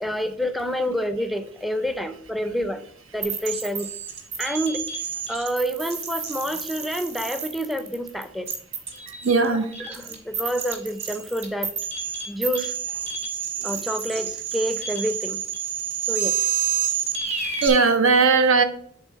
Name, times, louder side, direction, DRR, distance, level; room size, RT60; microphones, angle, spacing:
voice 1, 0.0-2.8 3.1-3.9 4.4-4.8 5.3-8.5 9.9-11.7 12.3-12.7 13.6-15.4 16.1-16.5, equal, ahead, 10 dB, 0.4 m, -28 dB
sound 1, 3.2-17.7, right 8 dB, 35° right, 1.5 m, -29 dB
voice 2, 8.9-9.8 12.3-12.4 13.6-13.9 17.6-18.6, right 4 dB, 85° right, 9 dB, 0.9 m, -19 dB
7.0 x 3.7 x 5.7 m, 0.62 s
head